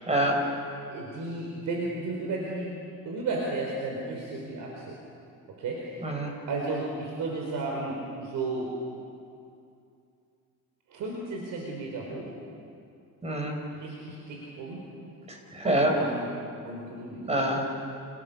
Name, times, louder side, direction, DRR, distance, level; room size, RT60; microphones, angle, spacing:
voice 1, 0.1-0.4 6.0-6.3 13.2-13.6 15.3-15.9 17.3-17.7, right 1 dB, 15° right, 2 dB, 4.8 m, -26 dB
voice 2, 0.9-2.7 3.0-5.0 5.6-6.1 6.3-8.7 10.9-12.3 13.7-14.8 15.6-16.3 16.6-17.3, right 2 dB, 55° right, -2 dB, 4.9 m, -34 dB
30.0 x 28.0 x 7.0 m, 2.5 s
cardioid pair, 170°, 36 cm